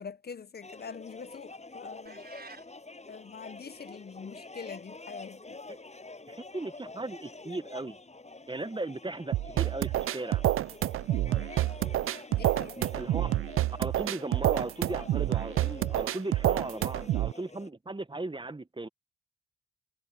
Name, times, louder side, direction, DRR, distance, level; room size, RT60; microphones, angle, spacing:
voice 1, 0.0-2.2 3.1-5.6 12.3-12.8, left 6 dB, 50° left, 0.9 m, -44 dB
sound 1, 0.6-17.7, left 3 dB, 35° left, 7.8 m, -47 dB
sound 2, 2.1-2.7, right 4 dB, 50° right, 7.6 m, -48 dB
voice 2, 6.3-8.0 8.5-10.4 12.8-13.3 13.8-18.9, right 2 dB, 25° right, 1.3 m, -37 dB
sound 3, 9.3-17.3, right 14 dB, 85° right, 0.6 m, -28 dB
supercardioid pair, 40°, 21 cm